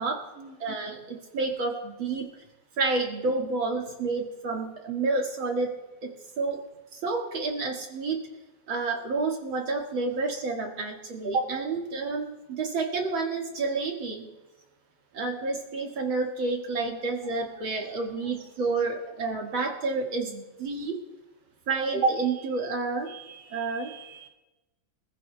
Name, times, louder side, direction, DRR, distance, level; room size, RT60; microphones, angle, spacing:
voice 1, 0.6-2.3 2.8-6.6 6.9-8.3 8.7-14.3 15.1-21.0 21.7-23.1 23.5-23.9, right 3 dB, 75° right, 0 dB, 2.6 m, -29 dB
voice 2, 17.5-17.9 23.1-24.3, right 8 dB, 55° right, 1 dB, 2.1 m, -48 dB
25.5 x 15.0 x 2.3 m, 1.0 s
omnidirectional pair, 2.2 m